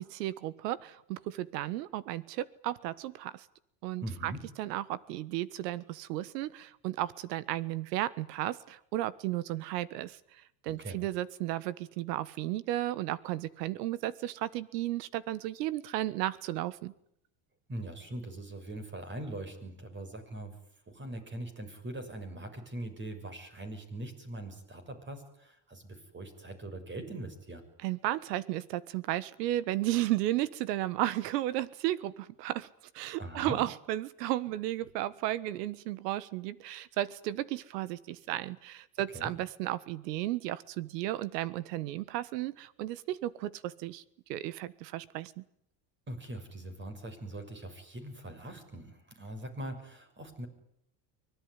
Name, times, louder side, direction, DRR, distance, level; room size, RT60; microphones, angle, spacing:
voice 1, 0.0-3.4 3.8-4.3 4.6-10.2 10.6-16.9 27.8-32.7 32.9-44.0 44.3-45.4, right 15 dB, 85° right, 18 dB, 1.5 m, -34 dB
voice 2, 4.0-4.4 10.8-11.0 17.7-20.6 20.9-27.6 33.2-33.6 39.1-39.3 46.1-50.5, right 1 dB, 25° right, 7 dB, 6.6 m, -41 dB
24.5 x 18.0 x 9.8 m, 0.74 s
supercardioid pair, 115°, 48 cm